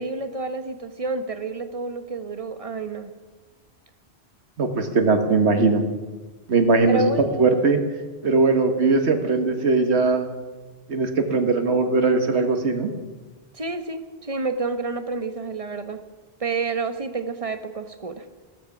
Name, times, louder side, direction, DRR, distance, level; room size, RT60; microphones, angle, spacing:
voice 1, 0.0-3.1 6.9-7.8 13.5-16.0 16.4-18.2, right 3 dB, 35° right, 9 dB, 1.1 m, -29 dB
voice 2, 4.6-5.8 6.5-7.8 8.2-10.3 10.9-12.9, right 3 dB, 85° right, 6 dB, 1.7 m, -20 dB
15.0 x 14.5 x 6.0 m, 1.3 s
omnidirectional pair, 1.1 m